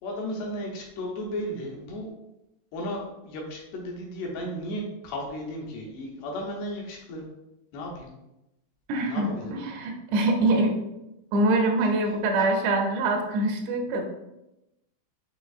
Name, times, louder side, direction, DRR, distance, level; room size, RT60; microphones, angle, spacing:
voice 1, 0.0-2.1 2.7-7.2 7.7-8.1 9.1-9.5, equal, 75° left, -1 dB, 2.8 m, -34 dB
voice 2, 8.9-10.8 11.3-14.0, right 2 dB, 80° right, 2 dB, 2.6 m, -24 dB
7.1 x 3.0 x 2.4 m, 0.91 s
omnidirectional pair, 5.1 m